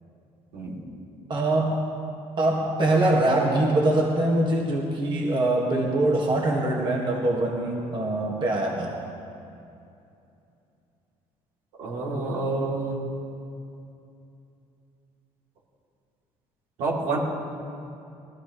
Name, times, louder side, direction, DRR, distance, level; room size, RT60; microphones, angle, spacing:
voice 1, 1.3-1.8 2.4-8.9, right 1 dB, 40° right, -2 dB, 1.9 m, -23 dB
voice 2, 11.8-12.9 16.8-17.2, right 3 dB, 85° right, -5 dB, 3.4 m, -28 dB
19.5 x 14.5 x 3.3 m, 2.7 s
cardioid pair, 95°, 12 cm